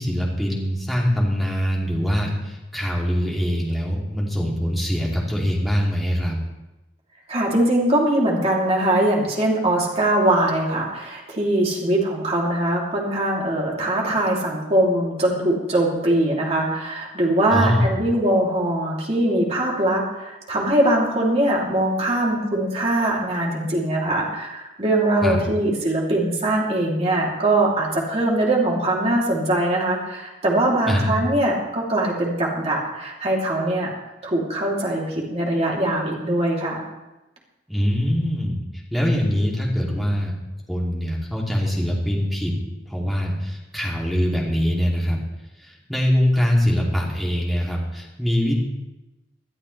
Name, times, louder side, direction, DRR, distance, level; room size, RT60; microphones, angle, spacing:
voice 1, 0.0-6.4 17.5-17.9 25.2-25.4 30.8-31.1 37.7-40.3 40.7-42.5 42.9-45.2 45.6-48.6, equal, ahead, -3 dB, 2.8 m, -23 dB
voice 2, 7.3-33.9 34.2-36.8, right 1 dB, 35° right, -3 dB, 3.0 m, -22 dB
20.5 x 11.5 x 3.3 m, 1.0 s
head